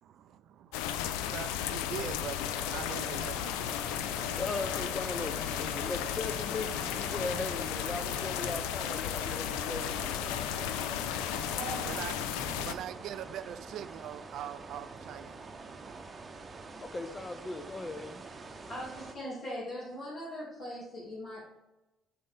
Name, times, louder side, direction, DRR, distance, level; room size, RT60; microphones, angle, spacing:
voice 1, 0.0-4.3 11.3-16.0, right 10 dB, 65° right, 0.4 m, -43 dB
sound 1, 0.7-12.7, left 10 dB, 85° left, 0.4 m, -34 dB
sound 2, 2.3-12.0, equal, ahead, 2.3 m, -46 dB
sound 3, 3.6-19.1, right 3 dB, 30° right, 0.9 m, -48 dB
voice 2, 4.4-10.3 16.8-18.2, left 3 dB, 25° left, 0.8 m, -38 dB
voice 3, 18.7-21.4, equal, 55° left, 2.5 m, -40 dB
6.6 x 5.4 x 3.5 m
hypercardioid pair, 60°, 0 cm